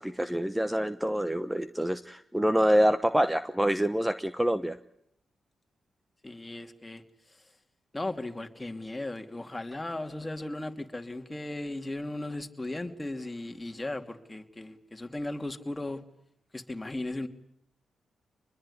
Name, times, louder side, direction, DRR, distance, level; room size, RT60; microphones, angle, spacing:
voice 1, 0.0-4.8, equal, 10° right, 1.0 m, -26 dB
voice 2, 6.2-7.0 7.9-16.0 16.5-17.3, left 2 dB, 20° left, 2.7 m, -36 dB
25.0 x 21.0 x 9.8 m
supercardioid pair, 50°, 0 cm